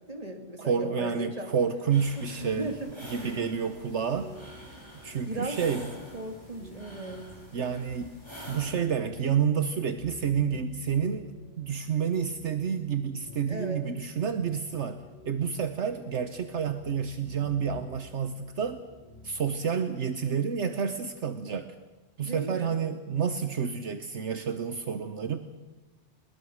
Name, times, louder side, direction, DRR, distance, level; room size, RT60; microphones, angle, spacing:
voice 1, 0.0-1.5 2.2-2.9 3.2-3.6 5.3-5.6 6.1-7.2 12.7-12.8 13.5-13.8 22.2-22.7, right 2 dB, 30° right, 5 dB, 2.3 m, -37 dB
voice 2, 0.6-2.7 3.1-4.3 5.0-5.9 7.5-8.2 8.5-11.3 11.6-15.0 15.3-18.8 19.2-21.7 22.2-25.4, right 7 dB, 70° right, 9 dB, 1.3 m, -29 dB
sound 1, 1.9-8.7, equal, 20° left, 7.5 m, -47 dB
sound 2, 2.4-19.6, equal, 55° left, 4.8 m, -52 dB
22.0 x 20.5 x 6.4 m, 1.2 s
omnidirectional pair, 1.3 m